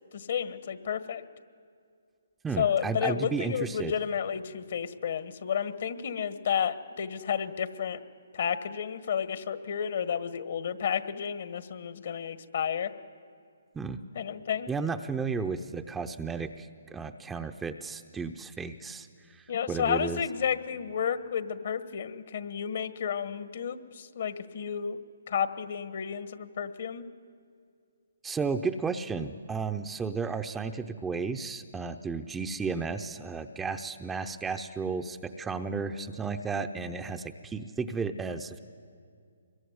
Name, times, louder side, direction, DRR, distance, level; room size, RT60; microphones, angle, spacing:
voice 1, 0.1-1.2 2.6-8.0 8.3-12.9 14.1-14.7 19.5-25.0 25.3-27.0, left 8 dB, 55° left, 11 dB, 1.5 m, -31 dB
voice 2, 2.4-3.9 13.7-14.0 14.7-20.2 28.2-38.6, right 5 dB, 10° right, 7 dB, 0.8 m, -33 dB
25.0 x 22.0 x 9.6 m, 2.3 s
hypercardioid pair, 150°, 0 cm